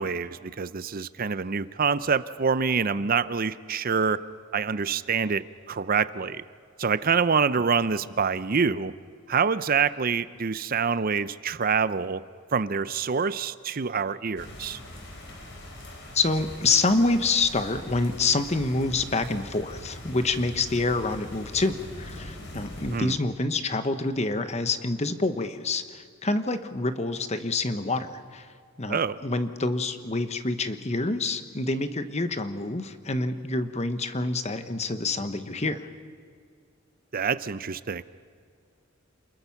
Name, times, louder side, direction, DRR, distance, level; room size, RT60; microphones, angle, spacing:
voice 1, 0.0-4.2 4.5-6.4 6.8-8.9 9.3-12.2 12.5-14.8 22.9-23.2 28.9-29.2 37.1-38.0, right 5 dB, 45° right, 15 dB, 0.6 m, -26 dB
sound 1, 14.4-23.0, left 1 dB, 60° left, 4.1 m, -42 dB
voice 2, 16.1-28.5 28.8-35.9, left 3 dB, 30° left, 10 dB, 1.1 m, -27 dB
28.5 x 21.0 x 5.9 m, 2.1 s
head